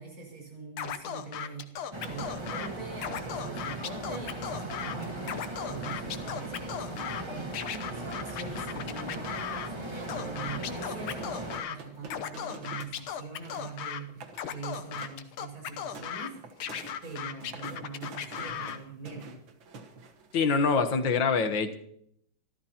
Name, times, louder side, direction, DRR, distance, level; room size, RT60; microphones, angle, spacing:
voice 1, 0.0-19.4, right 4 dB, 45° right, 0 dB, 6.5 m, -43 dB
Scratching (performance technique), 0.8-2.7 3.0-5.0 5.2-7.2 7.5-9.7 10.1-11.8 12.1-14.0 14.3-16.3 16.6-18.8, left 9 dB, 85° left, 1.8 m, -36 dB
sound 1, 1.9-11.6, right 2 dB, 15° right, 1.4 m, -38 dB
sound 2, 11.1-13.0 13.3-13.8 14.1-14.4 14.7-15.3 15.6-20.3, right 3 dB, 70° right, 2.1 m, -47 dB
voice 2, 20.3-21.8, left 5 dB, 65° left, 8 dB, 1.9 m, -25 dB
25.5 x 13.5 x 2.9 m, 0.70 s
omnidirectional pair, 2.2 m